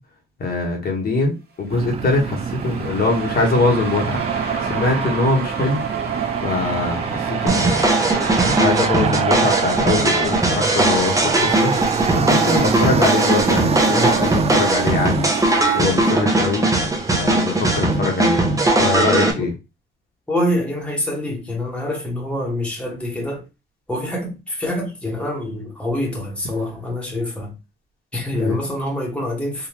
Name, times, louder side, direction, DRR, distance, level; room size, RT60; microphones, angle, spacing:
voice 1, 0.4-5.8 6.4-7.2 7.4-7.8 8.4-11.7 12.1-16.6 17.1-19.5 28.3-28.6, left 3 dB, 50° left, 1.4 m, -23 dB
Aircraft, 1.7-19.1, right 6 dB, 30° right, 0.4 m, -27 dB
sound 1, 1.8-11.7, right 6 dB, 50° right, 1.1 m, -28 dB
sound 2, 7.5-19.3, right 2 dB, 15° right, 0.9 m, -19 dB
voice 2, 20.3-23.4 23.9-27.5 28.1-29.7, left 1 dB, 5° left, 1.4 m, -25 dB
3.7 x 2.6 x 3.0 m
cardioid pair, 90°, 20 cm